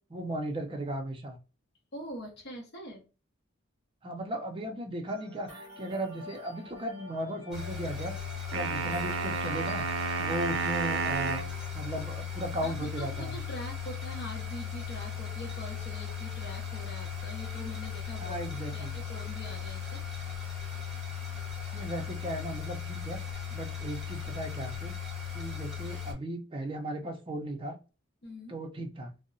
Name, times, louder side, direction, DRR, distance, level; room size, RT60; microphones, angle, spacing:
voice 1, 0.1-1.4 4.0-8.1 8.5-9.9 10.2-11.4 11.7-13.3 18.2-18.9 21.7-24.9 25.3-27.8 28.5-29.1, right 1 dB, 25° right, 3 dB, 0.5 m, -36 dB
voice 2, 1.9-3.0 12.6-20.0 28.2-28.5, equal, 55° left, -1 dB, 0.7 m, -43 dB
sound 1, 5.1-12.2, left 1 dB, 25° left, 1.3 m, -50 dB
sound 2, 7.5-26.1, left 7 dB, ahead, 1.0 m, -37 dB
sound 3, 8.5-11.5, right 5 dB, 85° right, 0.4 m, -31 dB
2.7 x 2.0 x 2.5 m, 0.33 s
head